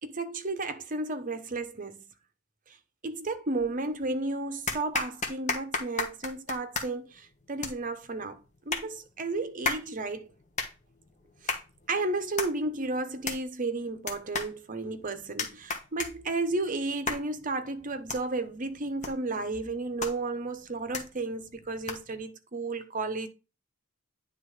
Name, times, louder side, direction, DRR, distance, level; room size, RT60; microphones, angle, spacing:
voice 1, 0.0-2.0 3.0-8.4 8.7-10.3 11.4-11.5 11.9-23.3, right 3 dB, 40° right, 0.9 m, -33 dB
sound 1, 3.6-4.1 4.7-22.2, left 4 dB, 35° left, 1.3 m, -37 dB
9.5 x 3.6 x 4.8 m
head